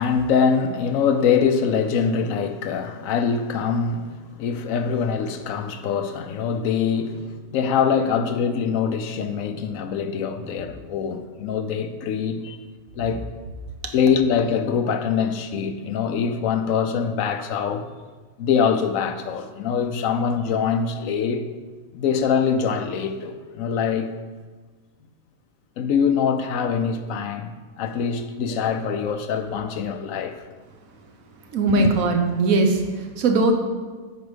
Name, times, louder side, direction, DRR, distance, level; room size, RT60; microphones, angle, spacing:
voice 1, 0.0-12.6 12.9-13.2 13.9-17.9 18.4-21.4 21.9-24.1 25.8-30.4 31.7-31.9, left 6 dB, 70° left, 0.9 m, -23 dB
voice 2, 31.5-33.5, right 3 dB, 65° right, 1.3 m, -20 dB
8.0 x 4.9 x 5.0 m
omnidirectional pair, 1.6 m